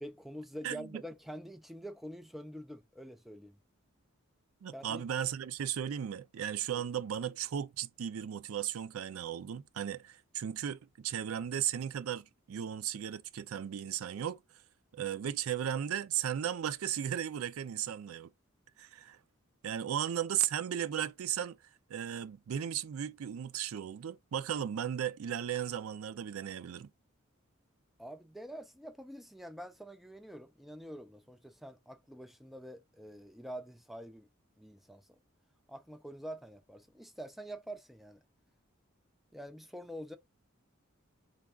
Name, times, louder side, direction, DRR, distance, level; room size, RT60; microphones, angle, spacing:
voice 1, 0.0-3.6 4.7-5.1 28.0-34.3 34.6-35.2 35.7-38.2 39.3-40.2, equal, ahead, 0.3 m, -46 dB
voice 2, 0.6-1.0 4.6-14.4 14.9-18.3 18.8-19.2 19.6-21.6 21.9-26.9, right 9 dB, 85° right, 0.4 m, -36 dB
3.4 x 2.3 x 3.5 m
head